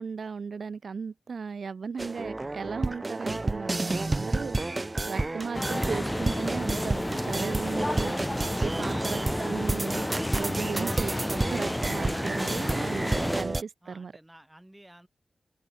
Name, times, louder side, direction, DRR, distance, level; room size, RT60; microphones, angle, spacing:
voice 1, 0.0-10.1 10.3-14.1, right 5 dB, 70° right, 0.8 m, -36 dB
sound 1, 2.0-13.6, right 2 dB, 30° right, 0.5 m, -31 dB
sound 2, 5.5-13.4, left 1 dB, 15° left, 0.7 m, -32 dB
voice 2, 13.8-15.1, right 1 dB, 10° right, 3.3 m, -54 dB
open air
wide cardioid pair, 80°, 0 cm